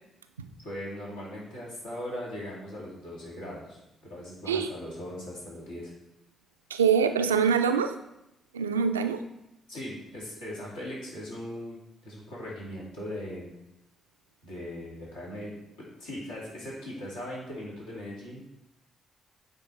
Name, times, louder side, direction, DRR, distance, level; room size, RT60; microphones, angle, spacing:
voice 1, 0.6-5.9 9.7-11.8 12.0-13.5 14.4-15.5 16.0-18.4, left 1 dB, 80° left, -6 dB, 2.5 m, -39 dB
voice 2, 6.7-8.0 8.5-9.2, right 6 dB, 90° right, 9 dB, 0.3 m, -24 dB
8.8 x 3.9 x 3.9 m, 0.87 s
figure-of-eight pair, 40°, 0 cm